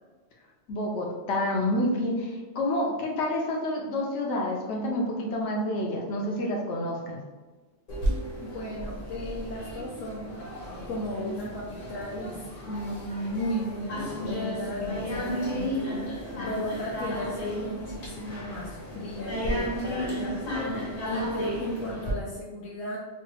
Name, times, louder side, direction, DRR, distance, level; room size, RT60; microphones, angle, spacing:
voice 1, 0.7-7.2, left 1 dB, 70° left, -1 dB, 0.9 m, -28 dB
sound 1, 7.9-22.1, equal, 50° left, 0.9 m, -33 dB
voice 2, 8.4-10.4 10.9-16.0 16.4-20.4 21.1-23.0, left 1 dB, 85° left, -6 dB, 1.0 m, -35 dB
3.1 x 2.2 x 3.1 m, 1.3 s
omnidirectional pair, 1.3 m